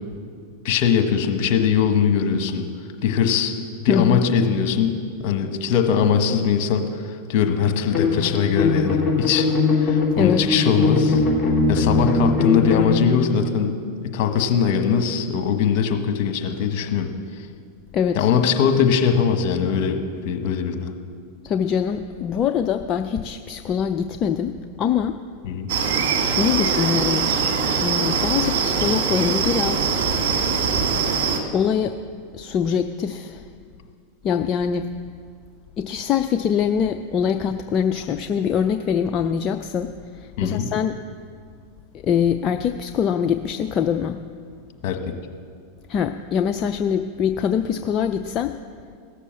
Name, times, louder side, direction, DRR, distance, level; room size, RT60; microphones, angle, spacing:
voice 1, 0.6-2.6 3.0-9.5 9.8-11.2 11.7-13.7 14.0-17.1 18.1-20.0 20.2-20.9 25.4-25.7 40.4-40.7 44.8-45.0, left 7 dB, 55° left, 5 dB, 1.4 m, -21 dB
voice 2, 3.9-4.2 10.2-10.4 17.9-18.3 21.4-24.5 24.8-25.2 26.2-27.3 27.8-29.9 31.5-32.0 32.3-33.4 34.2-34.9 35.8-41.0 41.9-44.2 45.9-48.6, left 7 dB, 35° left, 7 dB, 0.5 m, -23 dB
sound 1, 7.9-13.0, left 3 dB, 20° left, 3.6 m, -20 dB
sound 2, 25.7-31.4, right 6 dB, 70° right, 1.7 m, -22 dB
16.5 x 6.8 x 7.5 m, 2.2 s
hypercardioid pair, 105°, 0 cm